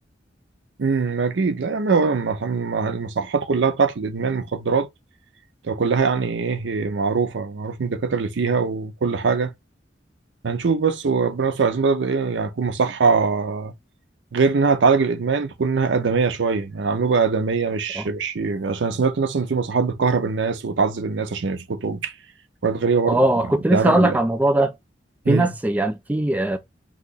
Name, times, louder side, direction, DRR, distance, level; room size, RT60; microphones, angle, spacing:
voice 1, 0.8-4.9 5.6-9.5 10.4-13.7 14.3-22.1 22.6-23.2 23.7-24.2 25.2-25.5, right 5 dB, 85° right, 0.5 m, -22 dB
voice 2, 23.0-24.7 25.3-26.6, right 1 dB, 10° right, 0.3 m, -20 dB
2.9 x 2.4 x 3.8 m
head